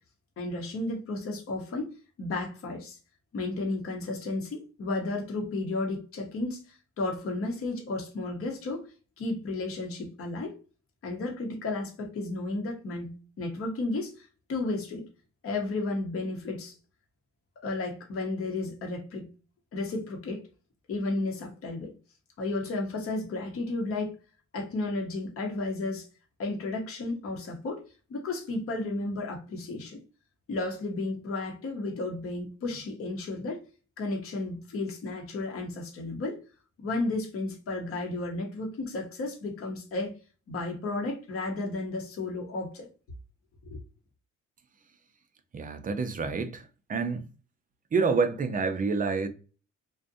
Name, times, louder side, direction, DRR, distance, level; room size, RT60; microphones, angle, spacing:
voice 1, 0.4-1.9 2.2-3.0 3.3-8.9 9.2-10.5 11.0-15.0 15.4-16.7 17.6-19.3 19.7-20.5 20.9-21.9 22.4-24.1 24.5-26.1 26.4-27.8 28.1-30.0 30.5-33.6 34.0-36.4 36.8-40.1 40.5-42.9 43.7-43.8, left 2 dB, 50° left, 0.8 m, -33 dB
voice 2, 45.5-47.3 47.9-49.3, right 4 dB, 30° right, 0.4 m, -28 dB
2.5 x 2.1 x 2.5 m
cardioid pair, 90°, 30 cm